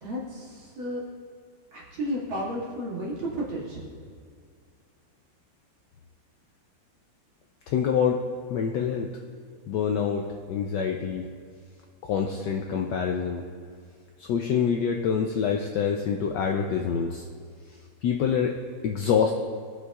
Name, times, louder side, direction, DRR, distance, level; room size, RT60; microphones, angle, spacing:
voice 1, 0.0-1.0 1.7-3.9, equal, 70° right, -7 dB, 2.8 m, -33 dB
voice 2, 7.7-8.2 8.5-9.1 9.7-11.3 12.0-13.5 14.2-17.3 17.7-18.6 18.8-19.3, left 7 dB, 80° left, 2 dB, 1.0 m, -26 dB
17.5 x 6.3 x 2.4 m, 2.1 s
omnidirectional pair, 2.4 m